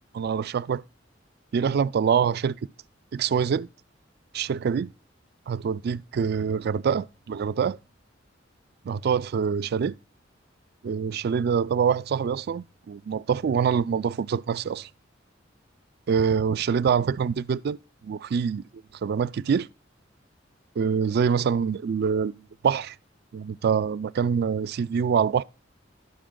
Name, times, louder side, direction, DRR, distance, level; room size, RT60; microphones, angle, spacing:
voice 1, 0.1-0.8 1.5-2.6 3.1-3.7 4.3-4.9 5.5-7.8 8.9-10.0 10.8-14.9 16.1-17.8 18.0-18.6 19.0-19.7 20.8-23.0 23.3-25.4, right 6 dB, 55° right, 0.3 m, -25 dB
12.0 x 5.0 x 3.7 m
head